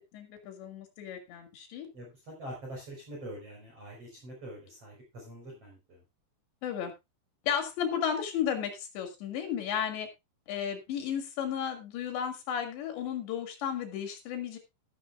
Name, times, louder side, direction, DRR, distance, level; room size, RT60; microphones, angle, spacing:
voice 1, 0.1-1.9 6.6-6.9 7.4-10.1 10.5-14.6, left 8 dB, 75° left, 5 dB, 4.6 m, -33 dB
voice 2, 1.9-6.0, right 1 dB, 35° right, -1 dB, 5.5 m, -44 dB
12.5 x 12.5 x 2.5 m, 0.23 s
omnidirectional pair, 5.2 m